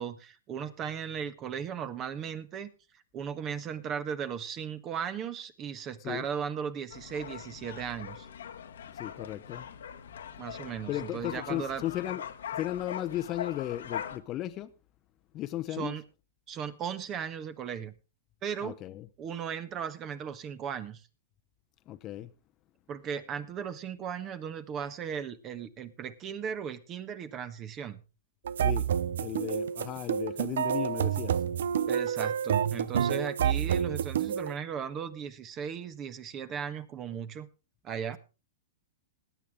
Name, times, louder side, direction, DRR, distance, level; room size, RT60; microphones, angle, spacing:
voice 1, 0.0-8.3 10.4-11.8 15.7-16.0 16.5-17.9 18.4-18.8 19.2-21.0 22.9-28.0 31.9-37.5 37.8-38.2, right 7 dB, 30° right, 1.3 m, -37 dB
sound 1, 6.9-14.2, left 9 dB, 80° left, 1.3 m, -41 dB
voice 2, 9.0-9.7 10.9-12.2 12.6-14.7 15.3-15.9 18.6-19.1 21.9-22.3 28.6-28.9 29.2-31.4, left 13 dB, 35° left, 0.8 m, -35 dB
sound 2, 28.5-34.5, right 8 dB, 75° right, 0.5 m, -29 dB
20.0 x 8.9 x 3.6 m
hypercardioid pair, 120°, 0 cm